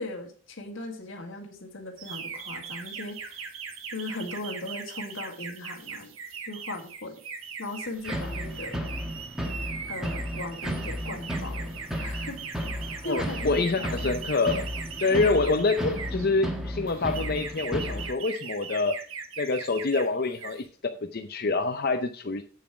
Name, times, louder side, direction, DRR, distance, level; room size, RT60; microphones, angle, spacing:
voice 1, 0.0-3.5 3.9-6.1 6.5-7.2 7.6-8.8 9.9-11.7 12.0-12.5 13.0-14.1 15.1-15.3, left 2 dB, 65° left, 3 dB, 1.8 m, -38 dB
sound 1, 2.0-16.3 16.9-20.1 20.3-20.6, right 6 dB, 80° right, 1.4 m, -40 dB
sound 2, 8.0-18.1, equal, 5° right, 1.4 m, -34 dB
voice 2, 13.0-14.7 15.0-19.0 19.4-20.6 21.0-22.4, left 3 dB, 50° left, 6 dB, 0.6 m, -26 dB
8.4 x 7.1 x 4.8 m, 0.41 s
head